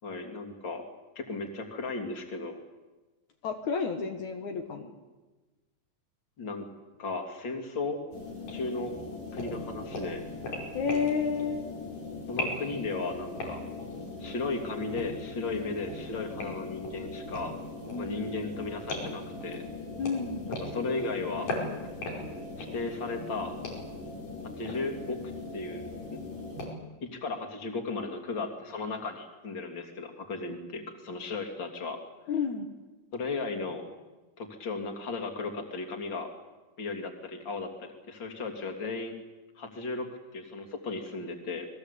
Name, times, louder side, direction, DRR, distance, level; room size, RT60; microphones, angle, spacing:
voice 1, 0.0-0.8 1.1-2.6 6.4-6.6 7.0-8.0 8.5-9.0 9.3-10.2 12.3-13.6 14.2-17.5 18.0-19.6 20.5-21.5 22.6-23.5 24.6-25.2 25.5-25.8 26.1-26.2 27.0-32.0 33.1-33.8 34.4-36.3 36.8-39.2 39.6-40.1 40.3-41.7, left 3 dB, 35° left, 5 dB, 3.5 m, -35 dB
voice 2, 3.4-4.9 10.7-11.6 17.9-18.2 20.0-20.5 32.3-32.7, left 5 dB, 70° left, 4 dB, 2.9 m, -31 dB
sound 1, 8.1-26.7, left 2 dB, 85° left, 6.8 m, -38 dB
28.5 x 20.5 x 8.4 m, 1.2 s
omnidirectional pair, 3.6 m